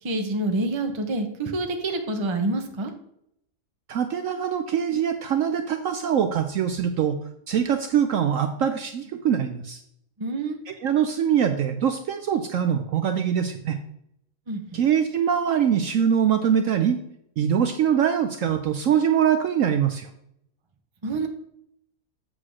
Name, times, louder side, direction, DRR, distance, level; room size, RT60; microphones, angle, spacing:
voice 1, 0.0-2.9 10.2-10.6 14.5-14.8 21.0-21.3, right 2 dB, 25° right, 5 dB, 0.6 m, -27 dB
voice 2, 3.9-7.2 7.5-9.8 10.8-13.8 14.7-17.0 17.4-20.1, right 8 dB, 65° right, 7 dB, 0.8 m, -23 dB
7.7 x 3.8 x 6.2 m, 0.74 s
omnidirectional pair, 1.7 m